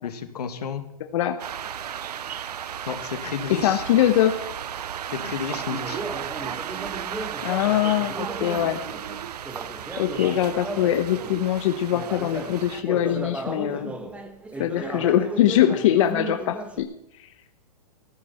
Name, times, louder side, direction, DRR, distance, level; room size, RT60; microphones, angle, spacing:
voice 1, 0.0-0.8 2.9-3.8 5.1-6.0, left 7 dB, 85° left, 7 dB, 2.3 m, -32 dB
sound 1, 1.4-12.8, right 9 dB, 85° right, 0.9 m, -34 dB
voice 2, 3.6-4.5 7.4-8.8 10.0-13.9 14.6-16.9 17.2-17.3, left 11 dB, 55° left, 7 dB, 1.1 m, -22 dB
Conversation, 5.7-11.4 11.9-16.8, right 2 dB, 5° right, 1.3 m, -36 dB
18.5 x 15.0 x 4.4 m, 0.79 s
hypercardioid pair, 150°, 20 cm